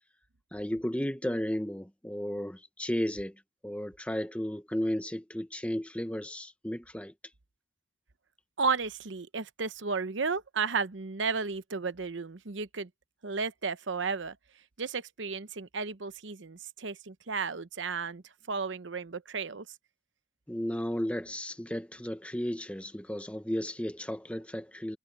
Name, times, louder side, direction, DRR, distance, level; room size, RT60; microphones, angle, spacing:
voice 1, 0.5-3.4 3.6-7.1 20.5-25.0, equal, 5° left, 1.1 m, -34 dB
voice 2, 8.6-12.9 13.2-14.4 14.8-18.2 18.5-19.7, right 4 dB, 80° right, 0.9 m, -33 dB
head